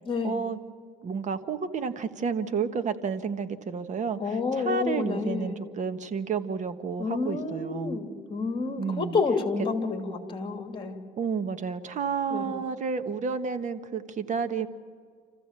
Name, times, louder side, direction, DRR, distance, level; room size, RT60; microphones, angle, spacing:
voice 1, 0.2-0.6 1.0-8.0 8.8-9.2 11.2-14.7, right 5 dB, 45° right, 9 dB, 1.4 m, -31 dB
voice 2, 4.2-5.6 7.0-11.0 12.3-12.5, left 4 dB, 30° left, 5 dB, 3.0 m, -29 dB
27.5 x 15.0 x 7.5 m, 2.1 s
cardioid pair, 110°, 17 cm